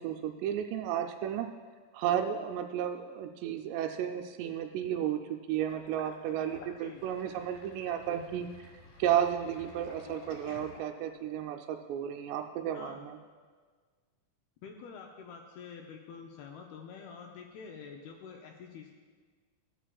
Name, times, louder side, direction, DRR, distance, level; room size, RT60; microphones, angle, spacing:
voice 1, 0.0-1.5 1.9-8.5 9.0-13.2, right 10 dB, 85° right, 3 dB, 2.6 m, -33 dB
Sink (filling or washing), 5.7-11.3, left 4 dB, 60° left, 2.9 m, -52 dB
voice 2, 12.7-13.0 14.6-18.9, left 6 dB, 80° left, 2 dB, 2.3 m, -47 dB
15.5 x 10.0 x 2.3 m, 1.5 s
omnidirectional pair, 5.1 m